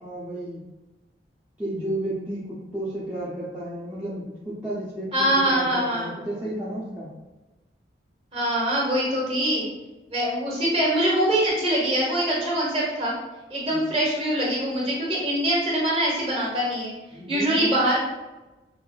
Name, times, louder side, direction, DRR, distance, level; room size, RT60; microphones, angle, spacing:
voice 1, 0.0-0.6 1.6-7.1 13.7-13.8 17.1-17.7, right 1 dB, 10° right, -10 dB, 0.6 m, -32 dB
voice 2, 5.1-6.1 8.3-9.6 10.1-13.2 13.5-16.9 17.3-18.0, right 1 dB, 30° right, -6 dB, 1.2 m, -23 dB
5.6 x 2.6 x 2.4 m, 1.1 s
head